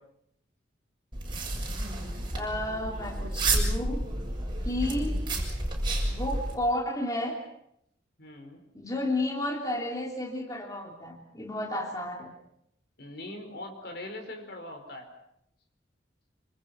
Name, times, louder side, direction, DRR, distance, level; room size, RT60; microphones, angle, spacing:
sound 1, 1.1-6.5, right 2 dB, 25° right, 6.8 m, -30 dB
voice 1, 2.3-4.0 4.6-5.2 6.0-7.4 8.7-12.3, left 1 dB, 20° left, 1 dB, 3.0 m, -32 dB
voice 2, 8.2-8.6 13.0-15.1, left 1 dB, 60° left, 5 dB, 4.9 m, -41 dB
26.5 x 26.0 x 6.0 m, 0.74 s
head